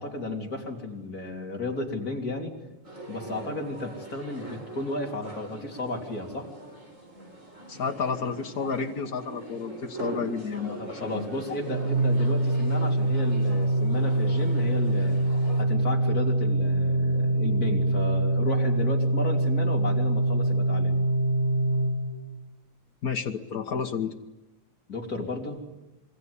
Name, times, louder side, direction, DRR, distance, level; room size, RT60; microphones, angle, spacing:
voice 1, 0.0-2.5 3.1-6.5 10.8-15.2 15.6-21.0 24.9-25.6, left 2 dB, 30° left, 0 dB, 3.7 m, -33 dB
sound 1, 2.8-15.6, right 2 dB, 20° right, 5.0 m, -41 dB
voice 2, 7.7-11.1 11.5-11.6 23.0-24.1, left 6 dB, 85° left, 4 dB, 0.8 m, -31 dB
Organ, 11.6-22.5, right 1 dB, 60° right, 0.7 m, -24 dB
27.0 x 23.0 x 9.8 m, 0.99 s
omnidirectional pair, 3.6 m